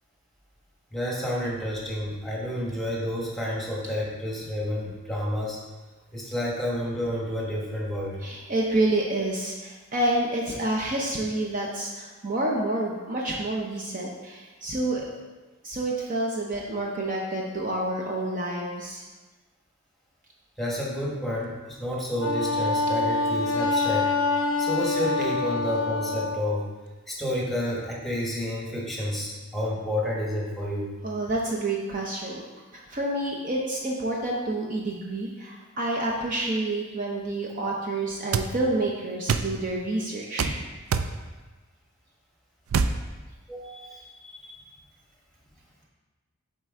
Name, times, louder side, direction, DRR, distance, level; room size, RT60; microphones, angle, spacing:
voice 1, 0.9-5.6 6.1-8.2 20.6-26.7 27.1-30.9 43.5-44.6, left 1 dB, ahead, -4 dB, 1.1 m, -30 dB
voice 2, 8.2-15.1 15.6-19.0 31.0-32.5 32.7-40.5, right 2 dB, 40° right, -2 dB, 0.6 m, -28 dB
Wind instrument woodwind instrument, 22.2-26.4, left 3 dB, 80° left, 0.5 m, -26 dB
sound 1, 38.3-38.5 39.3-39.5 40.4-40.6 40.9-41.1 42.7-43.0, right 5 dB, 80° right, 0.4 m, -24 dB
7.7 x 4.2 x 3.6 m, 1.3 s
head